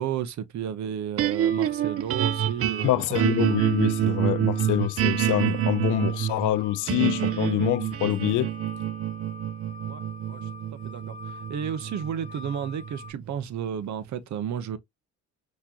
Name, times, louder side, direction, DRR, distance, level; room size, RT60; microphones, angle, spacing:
voice 1, 0.0-3.2 9.9-10.0 10.3-10.4 10.7-14.8, right 9 dB, 65° right, 0.9 m, -32 dB
sound 1, 1.2-13.5, right 11 dB, 50° right, 0.5 m, -27 dB
sound 2, 1.5-13.1, left 3 dB, 25° left, 2.4 m, -45 dB
voice 2, 2.8-8.5, left 15 dB, 80° left, 0.6 m, -26 dB
6.0 x 3.1 x 2.9 m
cardioid pair, 90°, 30 cm